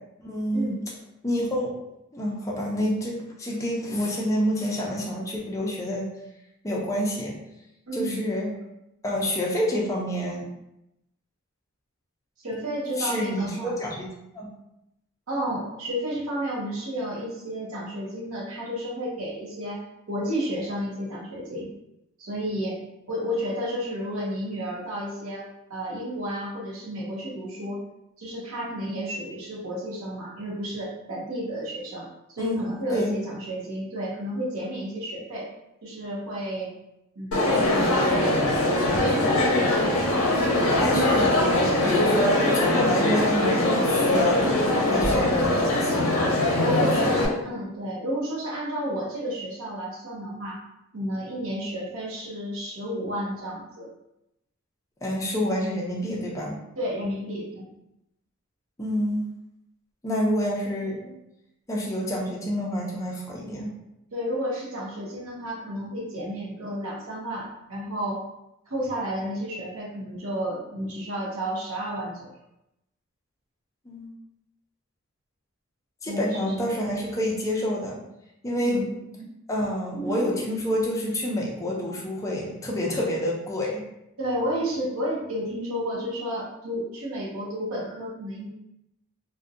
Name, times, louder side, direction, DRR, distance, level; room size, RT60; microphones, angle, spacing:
voice 1, 0.2-0.7 1.2-1.7 2.1-6.1 6.6-7.4 7.9-8.5 9.0-10.5 13.0-14.1 14.3-14.5 32.4-32.6 32.9-33.1 40.8-41.3 41.8-46.3 46.8-47.3 55.0-56.5 58.8-59.2 60.0-61.2 61.7-63.7 73.9-74.1 76.0-78.0 78.4-78.8 79.5-83.8, equal, 15° left, -3 dB, 0.4 m, -28 dB
voice 2, 7.9-8.2 12.4-13.8 15.3-21.7 22.2-22.8 23.1-27.8 28.2-35.5 35.8-36.7 37.2-38.4 38.6-39.2 46.6-50.6 50.9-53.9 56.8-57.7 64.1-68.2 68.7-72.3 76.1-76.6 78.5-79.3 79.9-80.5 84.2-88.5, equal, 75° right, -4 dB, 0.7 m, -31 dB
Crowd, 37.3-47.2, left 1 dB, 70° left, 0.6 m, -22 dB
2.6 x 2.1 x 2.5 m, 0.87 s
head